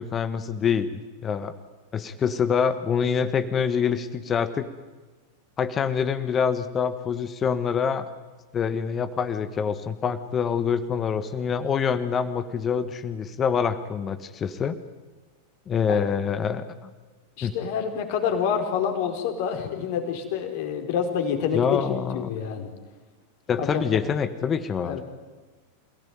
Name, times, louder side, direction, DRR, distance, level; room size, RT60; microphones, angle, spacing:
voice 1, 0.0-1.5 1.9-4.7 5.6-8.1 8.5-14.8 15.7-16.9 17.4-17.5 21.5-22.3 23.5-25.0, left 7 dB, 25° left, 12 dB, 1.5 m, -26 dB
voice 2, 17.4-21.8 22.1-22.7 23.6-24.1 24.8-25.0, left 7 dB, 50° left, 5 dB, 4.5 m, -27 dB
28.0 x 17.5 x 9.4 m, 1.3 s
figure-of-eight pair, 90°, 0 cm